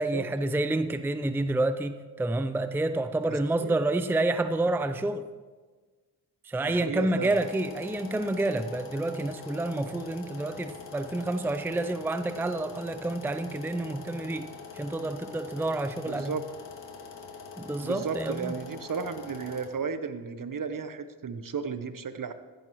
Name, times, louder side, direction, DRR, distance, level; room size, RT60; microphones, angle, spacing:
voice 1, 0.0-5.2 6.4-16.3 17.6-18.5, right 2 dB, 5° right, 10 dB, 0.5 m, -29 dB
voice 2, 3.2-3.8 6.7-7.3 16.1-16.4 17.8-22.3, right 5 dB, 50° right, 10 dB, 1.0 m, -34 dB
sound 1, 7.2-19.7, left 5 dB, 75° left, 2.0 m, -44 dB
15.0 x 11.5 x 3.1 m, 1.4 s
cardioid pair, 50°, 43 cm